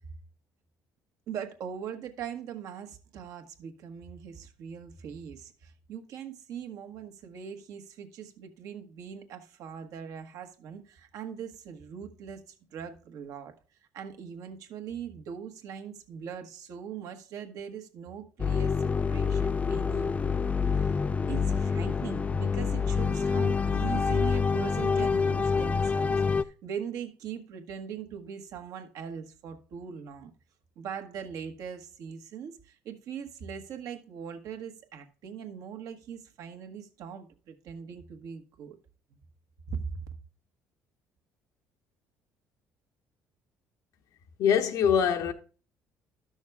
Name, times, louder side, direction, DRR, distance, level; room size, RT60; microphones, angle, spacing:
voice 1, 1.3-13.5 13.9-30.3 30.7-38.8 39.7-40.1, right 7 dB, 70° right, 1.4 m, -41 dB
sound 1, 18.4-26.4, left 5 dB, 25° left, 0.4 m, -27 dB
voice 2, 44.4-45.3, left 8 dB, 75° left, 1.1 m, -23 dB
12.0 x 6.3 x 3.4 m
cardioid pair, 95°, 6 cm